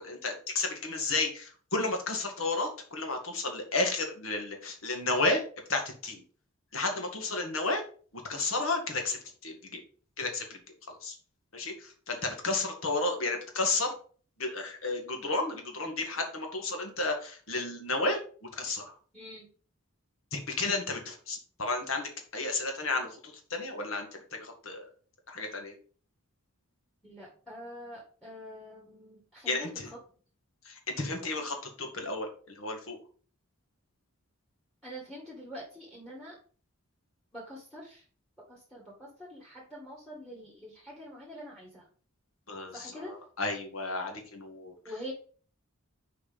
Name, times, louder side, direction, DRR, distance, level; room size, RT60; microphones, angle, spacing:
voice 1, 0.0-5.4 5.7-6.2 6.7-7.8 8.1-9.8 10.2-10.6 10.9-11.2 11.5-13.9 14.4-19.0 20.3-24.1 24.3-24.9 25.3-25.7 29.5-29.9 30.7-33.0 42.5-44.7, left 3 dB, 70° left, 3 dB, 2.0 m, -32 dB
voice 2, 19.1-19.5 27.0-30.0 34.8-36.4 37.3-38.0 38.5-41.9 42.7-43.2 44.8-45.1, equal, 5° left, -3 dB, 2.0 m, -45 dB
6.4 x 4.7 x 5.2 m, 0.42 s
head